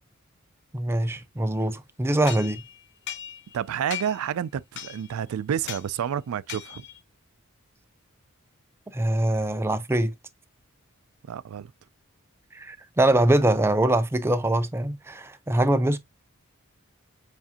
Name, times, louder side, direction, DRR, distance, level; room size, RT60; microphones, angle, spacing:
voice 1, 0.7-2.6 8.9-10.1 12.5-16.0, right 1 dB, 10° right, 0.4 m, -23 dB
sound 1, 2.3-3.6 3.9-4.3 4.8-5.2 5.7-5.9 6.5-7.0, left 10 dB, 55° left, 0.6 m, -38 dB
voice 2, 3.5-6.8 11.3-11.7, right 9 dB, 80° right, 0.3 m, -29 dB
7.2 x 2.6 x 2.8 m
head